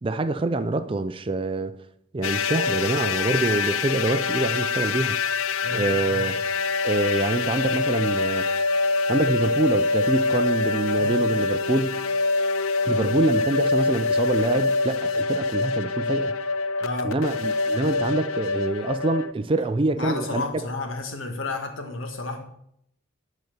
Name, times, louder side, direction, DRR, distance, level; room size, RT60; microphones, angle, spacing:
voice 1, 0.0-1.7 2.1-5.2 5.7-6.4 6.8-8.5 9.1-12.0 12.9-16.4 17.0-20.4, right 2 dB, 25° right, 0.4 m, -25 dB
sound 1, 2.2-19.3, left 4 dB, 90° left, 0.5 m, -25 dB
voice 2, 5.6-6.3 11.0-11.2 16.8-17.2 19.9-22.4, left 2 dB, 70° left, 1.4 m, -32 dB
10.5 x 4.2 x 6.6 m
head